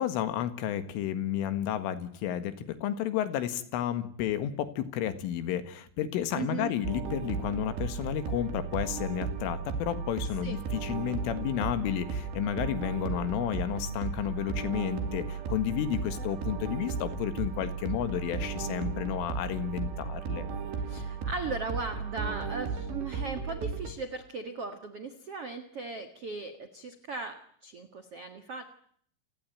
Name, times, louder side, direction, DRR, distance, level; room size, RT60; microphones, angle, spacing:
voice 1, 0.0-20.5, left 10 dB, 80° left, 11 dB, 4.2 m, -32 dB
voice 2, 6.3-6.7 10.4-10.6 16.1-16.3 20.8-28.6, right 4 dB, 80° right, 8 dB, 1.3 m, -38 dB
sound 1, 6.8-23.9, right 5 dB, 60° right, 4.7 m, -35 dB
29.0 x 18.5 x 9.1 m, 0.63 s
omnidirectional pair, 5.7 m